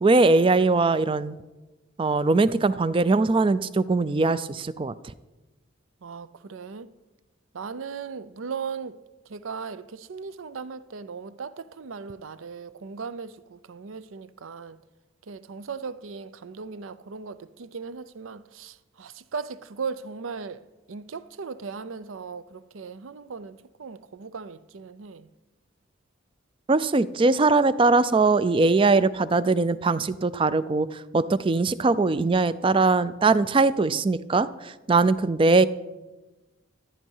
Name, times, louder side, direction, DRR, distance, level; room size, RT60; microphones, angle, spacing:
voice 1, 0.0-1.4 2.0-4.9 26.7-35.7, right 3 dB, 25° right, 0.4 m, -21 dB
voice 2, 6.0-6.9 7.5-9.0 9.3-14.8 15.3-20.6 20.9-25.3, right 5 dB, 75° right, 0.5 m, -37 dB
13.5 x 9.3 x 5.5 m
head